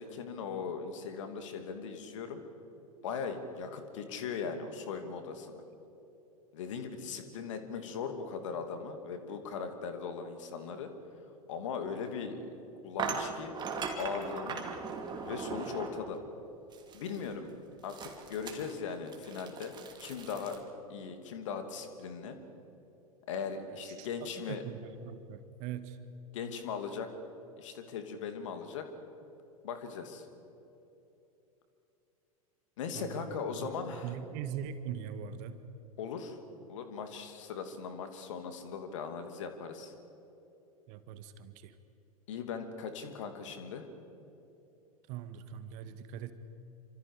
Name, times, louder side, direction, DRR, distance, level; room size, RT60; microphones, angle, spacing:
voice 1, 0.0-2.4 3.0-5.6 6.5-10.9 11.5-12.5 12.8-13.6 14.0-14.6 15.2-16.2 16.9-17.5 17.8-19.7 20.0-20.6 20.9-22.4 23.3-24.6 26.3-27.1 27.6-28.9 29.6-30.3 32.8-34.1 36.0-36.4 36.7-39.9 42.3-43.9, left 6 dB, 60° left, 7 dB, 2.6 m, -39 dB
sound 1, 12.0-12.1 13.0-16.1 16.7-17.3 17.9-20.6, right 5 dB, 25° right, 2.8 m, -39 dB
voice 2, 24.0-26.0 32.9-33.7 34.0-35.6 40.9-41.7 45.1-46.3, right 9 dB, 45° right, 11 dB, 1.5 m, -41 dB
28.0 x 26.0 x 4.9 m, 3.0 s
figure-of-eight pair, 90°, 19 cm